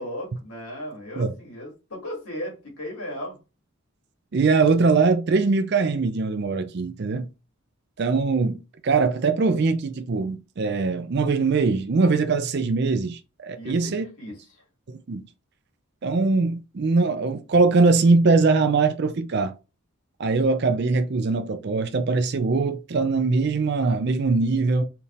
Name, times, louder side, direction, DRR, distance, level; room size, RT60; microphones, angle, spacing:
voice 1, 0.0-3.4 13.6-14.6, equal, 80° left, 2.3 m, -36 dB
voice 2, 4.3-7.3 8.0-14.1 14.9-15.2 16.0-19.5 20.2-24.8, right 4 dB, 50° right, 0.4 m, -22 dB
4.3 x 3.4 x 2.4 m
head